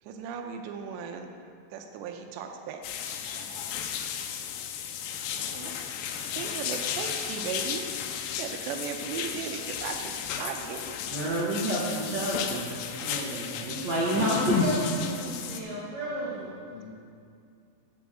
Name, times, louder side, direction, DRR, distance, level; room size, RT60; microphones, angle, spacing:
voice 1, 0.0-1.3 1.7-3.7 4.0-4.6 5.5-7.9 8.4-11.0, right 6 dB, 90° right, 4 dB, 2.9 m, -38 dB
sound 1, 2.8-15.6, left 7 dB, 85° left, 2.9 m, -33 dB
voice 2, 11.0-16.5, right 1 dB, 70° right, -6 dB, 1.6 m, -30 dB
voice 3, 16.0-17.1, left 4 dB, 55° left, -8 dB, 1.6 m, -49 dB
8.3 x 6.9 x 7.5 m, 2.4 s
omnidirectional pair, 5.0 m